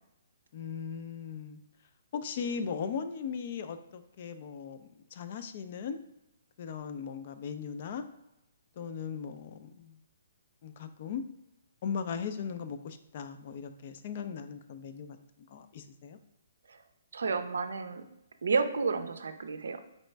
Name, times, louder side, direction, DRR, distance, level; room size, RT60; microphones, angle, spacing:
voice 1, 0.5-1.6 2.1-6.0 6.6-8.0 8.8-10.0 10.6-11.2 11.8-15.2 15.5-16.2, left 6 dB, 50° left, 10 dB, 0.4 m, -38 dB
voice 2, 17.1-18.0 18.4-19.8, right 4 dB, 80° right, 8 dB, 0.4 m, -31 dB
4.1 x 3.1 x 3.3 m, 0.86 s
hypercardioid pair, 150°, 0 cm